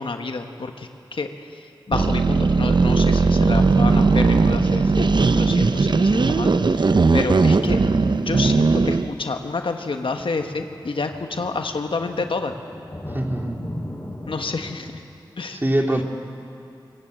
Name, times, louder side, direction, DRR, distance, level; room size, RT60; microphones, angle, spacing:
voice 1, 0.0-1.6 1.9-7.8 8.1-12.5 14.3-15.0 15.4-15.6, left 3 dB, 75° left, 6 dB, 1.4 m, -29 dB
sound 1, 1.9-9.1, right 3 dB, 60° right, 0.8 m, -18 dB
sound 2, 9.8-14.8, left 1 dB, 25° left, 7.1 m, -38 dB
voice 2, 13.1-13.6 15.5-16.0, right 1 dB, 25° right, 2 dB, 2.7 m, -23 dB
24.0 x 20.0 x 8.0 m, 2.7 s
cardioid pair, 40°, 9 cm